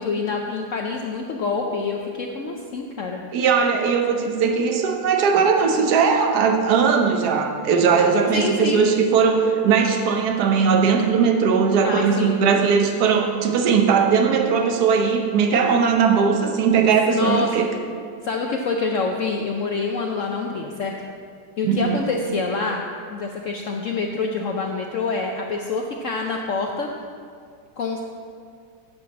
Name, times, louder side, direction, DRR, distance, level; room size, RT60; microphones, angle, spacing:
voice 1, 0.0-3.2 8.3-8.9 11.8-12.4 17.1-17.6 18.2-20.9 21.6-22.8 23.1-26.9 27.8-28.0, left 4 dB, 80° left, 1 dB, 0.7 m, -26 dB
voice 2, 3.3-17.7 21.6-22.0, right 6 dB, 65° right, 3 dB, 1.3 m, -19 dB
9.1 x 4.8 x 7.1 m, 2.2 s
omnidirectional pair, 2.0 m